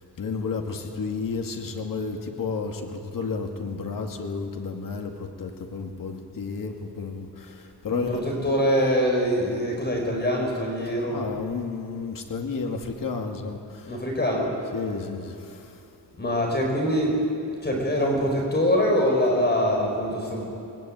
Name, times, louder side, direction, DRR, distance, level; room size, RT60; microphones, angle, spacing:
voice 1, 0.2-8.2 11.1-14.0 14.7-15.8, left 4 dB, 50° left, 3 dB, 2.2 m, -32 dB
voice 2, 7.9-11.2 13.9-14.6 16.2-17.2 17.4-20.5, equal, 25° left, 0 dB, 5.7 m, -24 dB
25.0 x 19.5 x 9.3 m, 2.7 s
wide cardioid pair, 150°, 41 cm